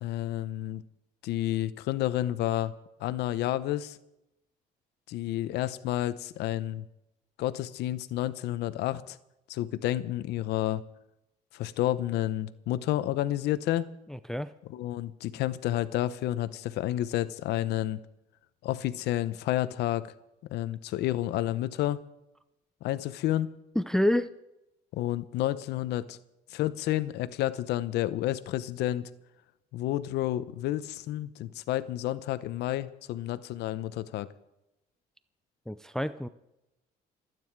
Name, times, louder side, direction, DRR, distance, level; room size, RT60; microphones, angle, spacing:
voice 1, 0.0-0.8 1.2-2.7 3.0-4.0 5.1-6.8 7.4-9.2 9.5-10.8 11.5-13.9 14.7-18.0 18.6-20.0 20.5-22.0 22.8-23.5 24.9-26.2 26.5-29.1 29.7-34.3, left 14 dB, 80° left, 15 dB, 0.8 m, -30 dB
voice 2, 14.1-14.5 23.8-24.3 35.7-36.3, left 1 dB, 5° left, 14 dB, 0.5 m, -28 dB
27.5 x 9.4 x 4.7 m, 0.89 s
cardioid pair, 110°, 17 cm